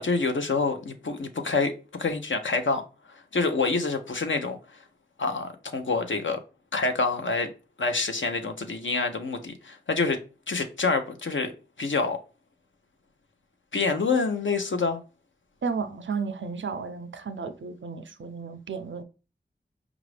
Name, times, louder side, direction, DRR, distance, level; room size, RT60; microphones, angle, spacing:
voice 1, 0.0-2.8 3.1-4.8 5.2-6.4 6.7-7.5 7.8-10.2 10.5-11.5 11.8-12.2 13.7-15.0, left 4 dB, 85° left, 0.6 m, -27 dB
voice 2, 15.6-19.0, right 5 dB, 80° right, 0.5 m, -33 dB
4.9 x 2.4 x 3.2 m
wide cardioid pair, 40°, 19 cm